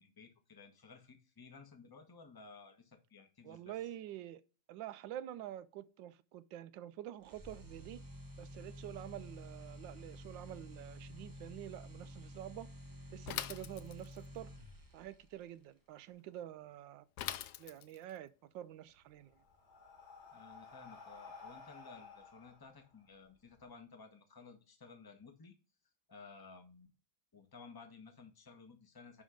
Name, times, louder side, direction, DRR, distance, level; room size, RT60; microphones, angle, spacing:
voice 1, 0.0-3.7 20.3-25.5 26.1-26.9 27.3-29.2, left 4 dB, 15° left, 1.0 m, -56 dB
voice 2, 3.4-4.4 4.7-8.0 8.4-12.7 13.1-14.5 14.9-17.1 17.6-19.4, right 12 dB, 75° right, 1.3 m, -47 dB
sound 1, 7.2-15.2, equal, 20° right, 0.6 m, -51 dB
Bicycle / Mechanisms, 13.3-14.3 17.2-18.1, left 12 dB, 70° left, 1.0 m, -42 dB
Breathing, 18.9-23.6, left 4 dB, 50° left, 2.8 m, -55 dB
10.0 x 3.7 x 5.1 m
omnidirectional pair, 2.1 m